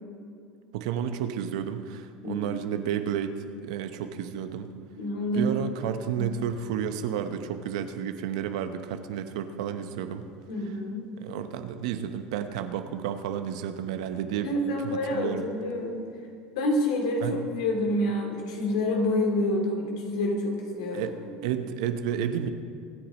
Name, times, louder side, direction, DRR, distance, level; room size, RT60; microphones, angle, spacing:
voice 1, 0.7-4.7 5.3-10.3 11.2-14.5 14.8-15.4 17.2-17.4 20.9-21.1 21.4-22.5, right 9 dB, 80° right, 9 dB, 0.9 m, -31 dB
voice 2, 2.2-2.6 5.0-6.3 10.5-11.0 14.4-16.0 16.6-21.3, left 1 dB, 85° left, 1 dB, 2.8 m, -28 dB
24.0 x 10.0 x 3.1 m, 2.4 s
supercardioid pair, 105°, 3 cm